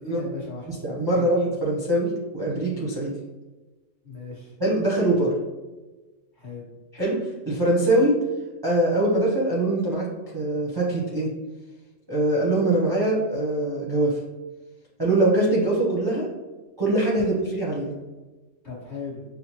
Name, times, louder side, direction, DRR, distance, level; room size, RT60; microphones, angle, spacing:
voice 1, 0.0-0.7 1.1-1.3 4.0-4.5 6.4-6.7 18.6-19.2, left 3 dB, 35° left, -6 dB, 1.3 m, -36 dB
voice 2, 0.7-3.1 4.6-5.3 6.9-8.2 8.6-10.1 10.3-11.3 12.1-14.2 15.0-16.3 16.8-17.9, right 1 dB, 25° right, -6 dB, 0.6 m, -23 dB
6.3 x 2.1 x 2.8 m, 1.2 s
omnidirectional pair, 1.5 m